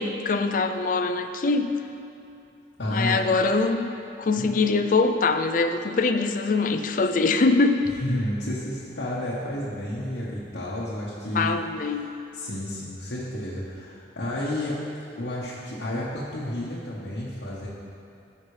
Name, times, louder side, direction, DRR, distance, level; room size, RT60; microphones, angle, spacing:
voice 1, 0.0-1.8 2.9-7.9 11.3-12.1, left 3 dB, 45° left, 7 dB, 0.4 m, -23 dB
voice 2, 2.8-3.2 4.3-4.5 8.0-11.6 11.9-12.1 12.3-14.8 15.2-17.7, left 1 dB, 80° left, -7 dB, 1.2 m, -31 dB
13.0 x 5.8 x 3.2 m, 2.7 s
head